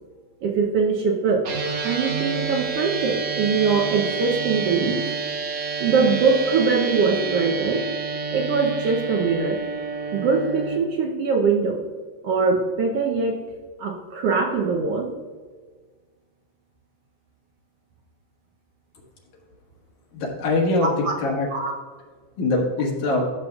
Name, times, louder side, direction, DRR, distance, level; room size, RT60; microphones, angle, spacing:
voice 1, 0.4-1.5 1.8-5.0 5.8-7.8 8.3-9.6 10.1-11.8 12.2-13.4 13.8-15.1 20.8-21.1 21.5-21.7, right 4 dB, 75° right, 1 dB, 1.4 m, -22 dB
sound 1, 1.4-10.8, right 5 dB, 60° right, 1.8 m, -29 dB
voice 2, 20.1-20.9 21.2-21.5 22.4-23.3, left 2 dB, 70° left, -1 dB, 2.9 m, -22 dB
14.0 x 6.9 x 2.3 m, 1.5 s
omnidirectional pair, 3.6 m